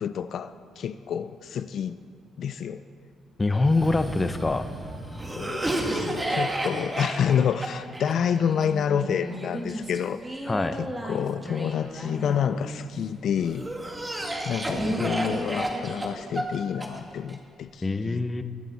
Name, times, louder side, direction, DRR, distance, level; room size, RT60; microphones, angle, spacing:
voice 1, 0.0-2.0 2.4-2.8 5.3-10.4 10.8-13.7 14.5-18.2, left 8 dB, 65° left, 12 dB, 0.4 m, -28 dB
voice 2, 3.4-4.7 10.5-10.8 17.8-18.4, left 2 dB, 20° left, 10 dB, 0.7 m, -24 dB
Cough, 3.6-12.8 13.4-17.4, right 1 dB, 15° right, 1.8 m, -32 dB
21.5 x 9.2 x 4.0 m, 2.3 s
cardioid pair, 90°, 0 cm